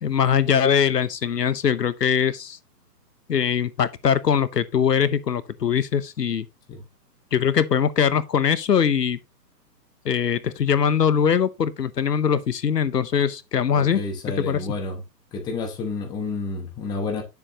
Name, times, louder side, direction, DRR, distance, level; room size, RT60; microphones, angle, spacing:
voice 1, 0.0-2.6 3.3-6.5 7.3-9.2 10.0-14.0 14.4-14.6, left 7 dB, 75° left, 0.9 m, -22 dB
voice 2, 13.7-15.0 15.3-17.2, left 3 dB, 10° left, 1.0 m, -30 dB
9.7 x 7.0 x 2.8 m
figure-of-eight pair, 135°, 50 cm